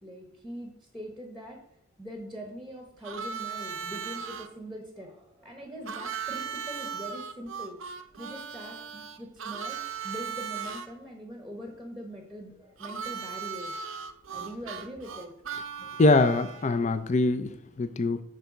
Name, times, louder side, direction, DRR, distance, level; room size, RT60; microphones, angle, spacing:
voice 1, 0.0-1.6 2.0-7.8 8.1-13.7 14.3-15.3, equal, ahead, 2 dB, 1.0 m, -42 dB
Harmonica, 3.0-4.5 5.9-10.9 12.8-16.7, right 6 dB, 75° right, 0.6 m, -37 dB
voice 2, 16.0-18.2, left 2 dB, 35° left, 10 dB, 0.4 m, -23 dB
6.7 x 4.5 x 6.0 m, 0.74 s
head